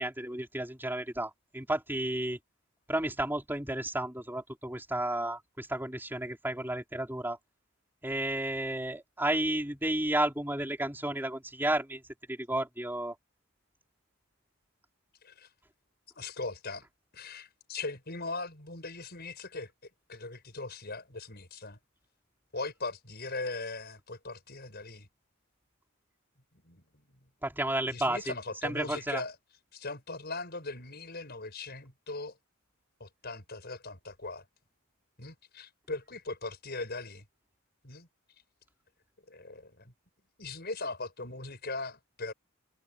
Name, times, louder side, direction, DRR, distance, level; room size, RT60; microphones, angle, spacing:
voice 1, 0.0-2.4 2.9-7.4 8.0-12.0 12.3-13.1 27.4-28.3 28.6-29.2, right 1 dB, 10° right, 4.9 m, -32 dB
voice 2, 16.2-16.9 17.1-19.7 20.1-21.8 22.5-25.1 26.6-26.8 27.8-29.4 29.7-32.4 33.0-34.4 35.2-37.2 37.8-38.1 39.3-39.9 40.4-42.3, left 3 dB, 45° left, 6.8 m, -39 dB
head